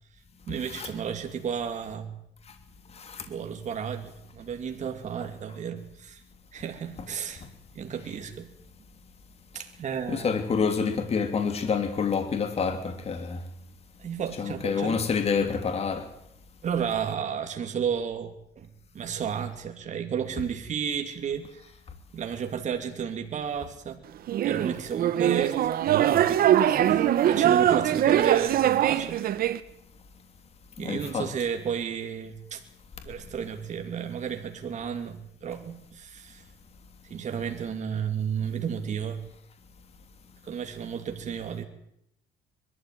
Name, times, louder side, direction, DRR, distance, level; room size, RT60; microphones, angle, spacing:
voice 1, 0.5-2.2 3.3-6.2 6.5-7.5 7.7-8.5 9.5-10.4 14.0-15.1 15.4-15.5 16.6-21.6 22.1-24.0 24.4-25.6 26.0-29.2 30.8-32.6 33.1-36.5 37.0-39.2 40.4-41.6, right 7 dB, 45° right, 2.8 m, -33 dB
voice 2, 2.9-3.2 7.4-7.5 10.1-13.4 14.4-16.1 30.8-31.3, left 5 dB, 35° left, 3.0 m, -28 dB
sound 1, 24.3-29.6, right 11 dB, 60° right, 1.3 m, -22 dB
22.0 x 13.5 x 9.3 m
cardioid pair, 110°, 17 cm